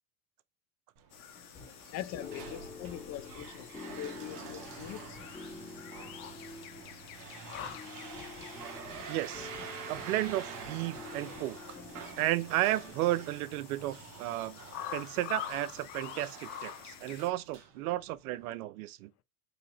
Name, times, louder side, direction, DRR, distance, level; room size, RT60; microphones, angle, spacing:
sound 1, 1.0-18.5, right 6 dB, 50° right, 1.0 m, -48 dB
sound 2, 1.1-17.3, left 10 dB, 55° left, 0.8 m, -48 dB
sound 3, 1.3-14.1, left 4 dB, 15° left, 1.4 m, -49 dB
voice 1, 1.9-5.2, left 12 dB, 40° left, 0.5 m, -42 dB
voice 2, 9.1-9.5 9.9-11.6 12.2-14.6 14.9-19.1, right 15 dB, 80° right, 0.5 m, -33 dB
3.1 x 2.7 x 3.9 m
hypercardioid pair, 100°, 43 cm